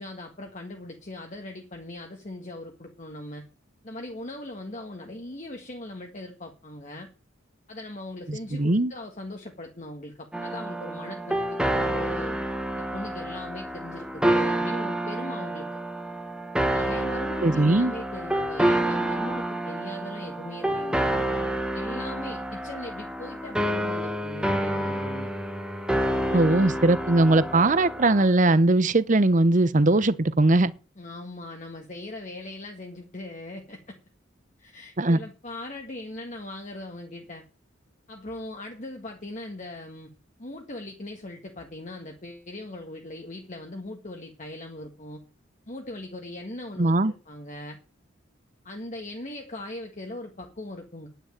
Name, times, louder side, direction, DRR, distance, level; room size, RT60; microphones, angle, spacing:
voice 1, 0.0-3.4 3.8-7.1 7.7-12.3 12.8-15.7 16.7-21.1 21.7-25.3 26.2-26.3 31.0-33.9 34.6-37.4 38.1-40.1 40.4-45.2 45.7-47.8 48.6-51.1, left 1 dB, 40° left, 1.6 m, -39 dB
voice 2, 8.3-8.9 17.4-17.9 26.3-30.7 35.0-35.2 46.8-47.1, right 2 dB, 40° right, 0.8 m, -20 dB
sound 1, 10.3-28.3, right 1 dB, 5° right, 1.4 m, -28 dB
10.0 x 9.1 x 8.8 m
head